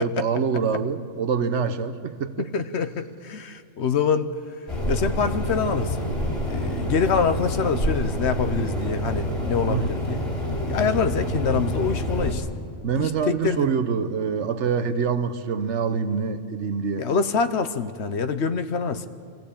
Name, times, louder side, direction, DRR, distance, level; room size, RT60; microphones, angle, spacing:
voice 1, 0.0-2.5 9.7-9.9 12.8-17.1, right 6 dB, 65° right, 1.1 m, -25 dB
voice 2, 2.4-4.3 4.9-6.1 6.4-10.2 10.7-12.5 13.0-13.7 17.0-19.1, left 6 dB, 65° left, 1.1 m, -25 dB
sound 1, 4.7-12.3, equal, 35° left, 3.1 m, -27 dB
23.0 x 15.0 x 8.5 m
omnidirectional pair, 1.3 m